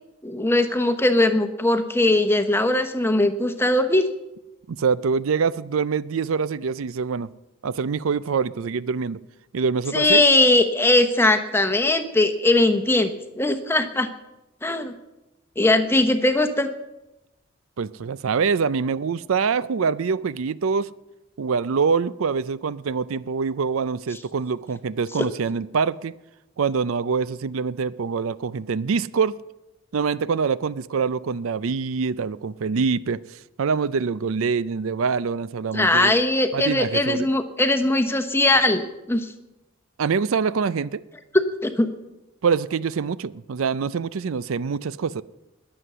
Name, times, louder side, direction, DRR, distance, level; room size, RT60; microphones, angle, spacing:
voice 1, 0.2-4.0 9.9-14.1 14.6-14.9 15.6-16.7 35.7-39.3 41.3-41.9, left 2 dB, 10° left, 0.9 m, -20 dB
voice 2, 4.7-7.3 7.6-9.2 9.5-10.2 17.8-20.9 21.4-26.1 26.6-29.4 29.9-33.2 33.6-36.1 36.5-37.3 40.0-41.0 42.4-45.2, right 5 dB, 75° right, 0.5 m, -25 dB
21.0 x 7.8 x 6.8 m
head